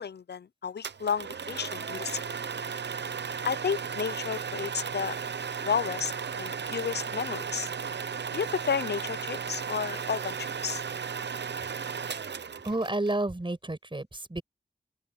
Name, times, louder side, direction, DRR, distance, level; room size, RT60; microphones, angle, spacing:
voice 1, 0.0-2.2 3.4-5.2 5.6-7.7 8.3-10.8, left 6 dB, 70° left, 0.5 m, -32 dB
sound 1, 0.8-13.1, right 6 dB, 85° right, 0.7 m, -35 dB
voice 2, 12.6-14.4, right 2 dB, 30° right, 5.7 m, -30 dB
open air
wide cardioid pair, 65°, 18 cm